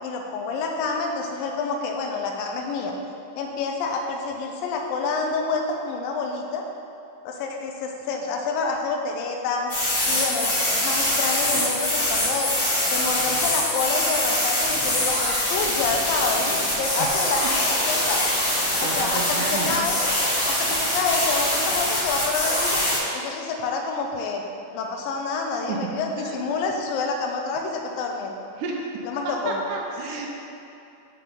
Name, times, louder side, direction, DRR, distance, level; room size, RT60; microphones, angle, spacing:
voice 1, 0.0-2.9 3.4-6.7 7.3-9.7 10.1-12.5 12.9-18.2 18.8-20.0 20.5-22.8 23.1-24.4 24.7-28.3 29.0-29.6, left 4 dB, 85° left, 2 dB, 2.4 m, -28 dB
sound 1, 9.7-23.0, left 1 dB, 40° left, 2.0 m, -24 dB
voice 2, 18.5-19.9 25.7-25.8 26.2-26.4 28.6-28.9 29.5-30.3, right 4 dB, 80° right, 0 dB, 2.0 m, -31 dB
6.6 x 5.8 x 3.8 m, 2.8 s
omnidirectional pair, 4.0 m